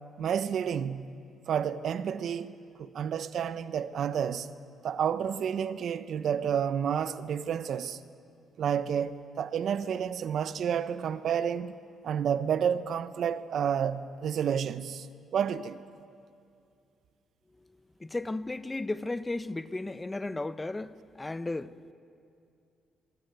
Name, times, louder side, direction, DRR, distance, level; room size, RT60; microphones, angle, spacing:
voice 1, 0.2-1.1 1.5-4.5 4.8-8.0 8.6-11.8 12.0-15.1 15.3-15.8, right 8 dB, 65° right, 1.0 m, -30 dB
voice 2, 18.0-21.9, left 2 dB, 15° left, 0.8 m, -34 dB
23.5 x 23.5 x 9.4 m
cardioid pair, 90°, 0 cm